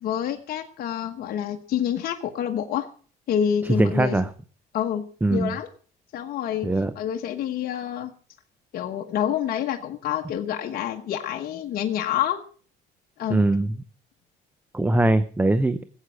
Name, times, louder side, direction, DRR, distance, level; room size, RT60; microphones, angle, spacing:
voice 1, 0.0-2.9 3.3-4.1 4.7-5.7 6.1-6.7 6.9-8.1 8.7-12.4 13.2-13.4, left 9 dB, 65° left, 3 dB, 1.2 m, -27 dB
voice 2, 3.8-4.3 5.2-5.5 6.6-6.9 13.3-13.7 14.7-15.8, right 2 dB, 10° right, 14 dB, 0.6 m, -21 dB
16.5 x 8.2 x 6.2 m, 0.43 s
cardioid pair, 110°, 17 cm